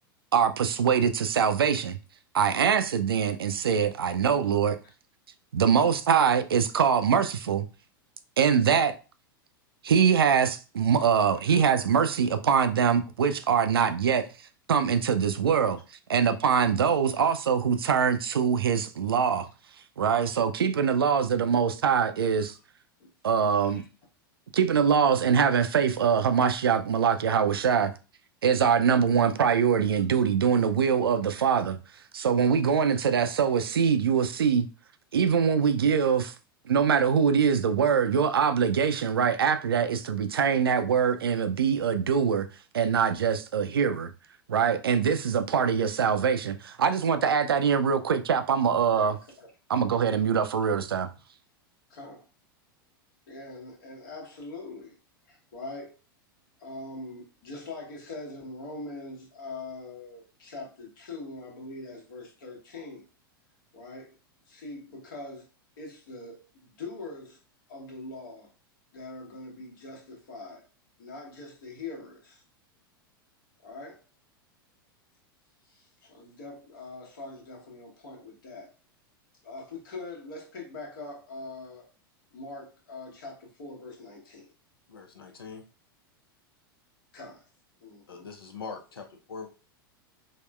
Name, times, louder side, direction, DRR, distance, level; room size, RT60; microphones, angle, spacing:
voice 1, 0.3-2.0 2.3-4.8 5.5-7.7 8.4-9.0 9.8-14.3 14.7-15.8 16.1-19.5 20.0-22.5 23.2-23.8 24.5-27.9 28.4-31.8 32.1-34.7 35.1-36.3 36.7-42.5 42.7-44.1 44.5-49.2 49.7-51.1, right 7 dB, 80° right, 0.4 m, -23 dB
voice 2, 48.9-49.5 51.9-52.2 53.3-55.0 55.3-56.0 56.6-63.1 63.7-64.2 64.5-65.5 65.8-67.4 67.7-68.5 68.9-70.7 71.0-72.4 73.6-74.0 75.7-78.7 79.4-81.9 82.3-84.5 87.1-87.5 87.8-88.3, left 2 dB, 60° left, 1.1 m, -42 dB
voice 3, 84.9-85.6 88.1-89.5, left 5 dB, 80° left, 0.6 m, -42 dB
3.5 x 2.1 x 2.2 m
figure-of-eight pair, 95°, 12 cm